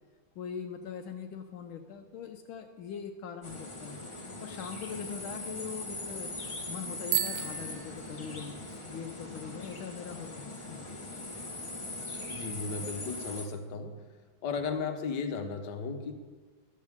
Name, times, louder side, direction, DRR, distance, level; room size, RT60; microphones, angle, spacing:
voice 1, 0.3-8.5 8.9-10.9, left 7 dB, 80° left, 6 dB, 1.5 m, -42 dB
sound 1, 3.4-13.5, left 2 dB, 15° left, 1.2 m, -41 dB
Bicycle bell, 7.0-8.8, right 11 dB, 65° right, 1.2 m, -34 dB
voice 2, 12.3-14.0 14.4-16.1, left 5 dB, 60° left, 5 dB, 1.6 m, -35 dB
14.0 x 12.5 x 3.6 m, 1.4 s
omnidirectional pair, 2.3 m